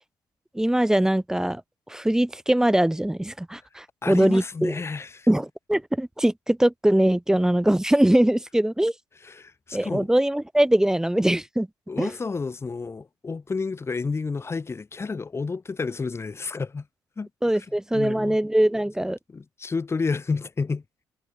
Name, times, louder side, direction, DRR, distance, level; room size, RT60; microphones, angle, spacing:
voice 1, 0.5-1.6 1.9-4.7 5.3-8.9 9.7-11.7 12.0-12.1 17.4-19.2, right 1 dB, 5° right, 0.5 m, -22 dB
voice 2, 4.0-5.3 9.2-10.1 11.9-16.9 17.2-17.3 17.9-18.4 19.3-20.8, left 4 dB, 30° left, 1.0 m, -30 dB
supercardioid pair, 65°, 9 cm